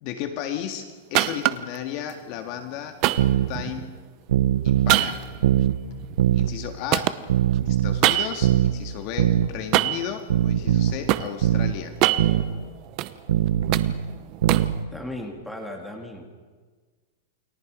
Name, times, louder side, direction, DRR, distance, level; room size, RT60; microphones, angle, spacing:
voice 1, 0.0-3.0 3.5-4.1 4.6-5.3 6.3-7.2 7.7-12.0, left 10 dB, 40° left, 5 dB, 1.9 m, -34 dB
sound 1, 1.1-1.8 3.0-4.0 4.9-6.6 6.9-8.6 9.7-10.1 10.7-11.3 11.8-13.1 13.5-14.8, right 16 dB, 35° right, 0.9 m, -24 dB
sound 2, 3.2-3.5 4.3-5.0 5.4-5.8 6.2-6.5 7.3-8.0 8.4-8.7 9.2-9.5 10.3-11.0 11.4-11.8 12.2-12.5 13.3-14.0 14.4-14.8, right 11 dB, 80° right, 1.2 m, -21 dB
voice 2, 14.9-16.3, left 1 dB, ahead, 0 dB, 2.8 m, -36 dB
29.0 x 23.5 x 5.2 m, 1.5 s
supercardioid pair, 160°, 0 cm